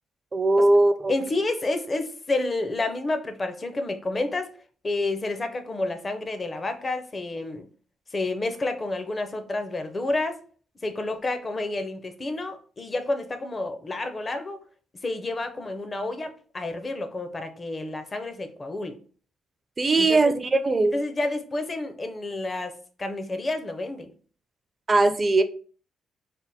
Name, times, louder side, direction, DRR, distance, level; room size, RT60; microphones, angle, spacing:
voice 1, 0.3-1.1 19.8-20.9 24.9-25.4, right 2 dB, 30° right, 10 dB, 0.4 m, -20 dB
voice 2, 1.1-4.5 4.8-7.6 8.1-10.4 10.8-14.6 15.0-19.0 20.0-20.3 20.9-24.1, left 2 dB, 30° left, 8 dB, 0.6 m, -29 dB
3.4 x 2.1 x 4.1 m, 0.42 s
cardioid pair, 90°, 0 cm